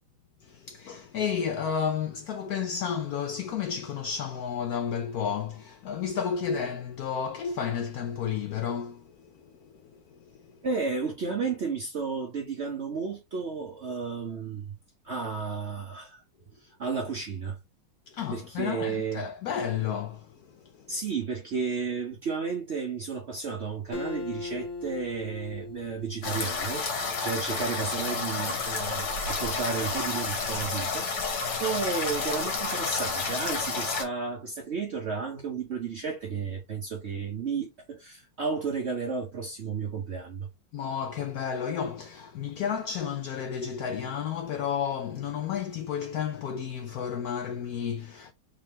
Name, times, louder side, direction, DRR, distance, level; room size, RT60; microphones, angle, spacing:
voice 1, 0.4-10.6 18.1-20.9 40.7-48.3, left 7 dB, 85° left, 0.8 m, -32 dB
voice 2, 10.6-14.8 15.0-16.2 16.6-17.6 18.3-19.3 20.9-26.8 27.2-40.5, right 5 dB, 85° right, 0.5 m, -33 dB
Acoustic guitar, 23.9-27.3, left 3 dB, 40° left, 1.3 m, -39 dB
sound 1, 26.2-34.0, left 4 dB, 55° left, 1.8 m, -30 dB
3.7 x 3.7 x 3.0 m
omnidirectional pair, 2.2 m